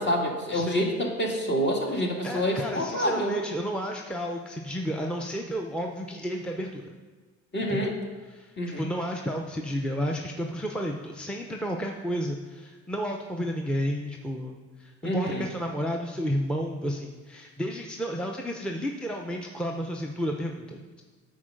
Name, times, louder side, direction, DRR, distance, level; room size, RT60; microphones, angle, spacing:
voice 1, 0.0-3.3 7.5-8.0 8.6-8.9 15.0-15.5, equal, 35° left, 0 dB, 1.7 m, -27 dB
voice 2, 0.5-0.9 2.2-6.9 7.7-7.9 8.3-21.0, equal, 5° left, 1 dB, 0.6 m, -32 dB
8.4 x 4.5 x 6.4 m, 1.4 s
cardioid pair, 90°, 30 cm